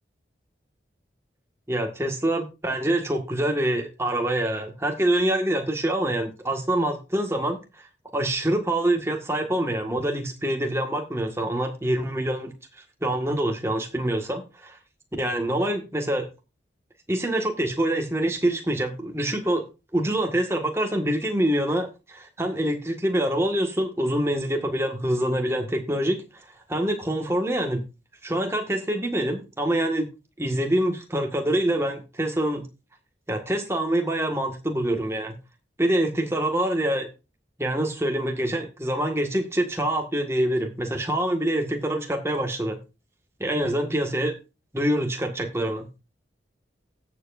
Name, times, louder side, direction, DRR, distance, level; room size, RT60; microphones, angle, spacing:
voice 1, 1.7-7.8 8.1-12.5 13.0-14.8 15.2-16.3 17.1-26.4 26.7-27.8 28.2-30.1 30.4-32.6 33.3-35.3 35.8-37.1 37.6-42.8 43.4-44.4 44.7-45.9, right 1 dB, 15° right, 1.7 m, -25 dB
16.5 x 7.1 x 2.6 m
head